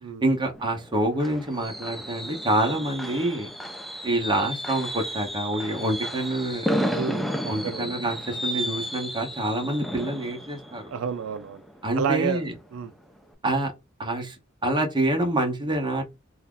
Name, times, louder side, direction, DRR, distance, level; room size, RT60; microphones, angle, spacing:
voice 1, 0.2-3.5 4.0-6.7 7.5-10.8 11.8-12.5 13.4-13.7 14.0-14.4 14.6-16.0, right 1 dB, 20° right, 0.9 m, -26 dB
Fireworks, 0.5-12.2 12.6-12.9 13.2-13.3, equal, ahead, 0.3 m, -33 dB
voice 2, 6.9-7.9 10.9-11.6 12.0-12.4 12.7-12.9, right 7 dB, 75° right, 0.4 m, -30 dB
2.7 x 2.3 x 3.6 m
head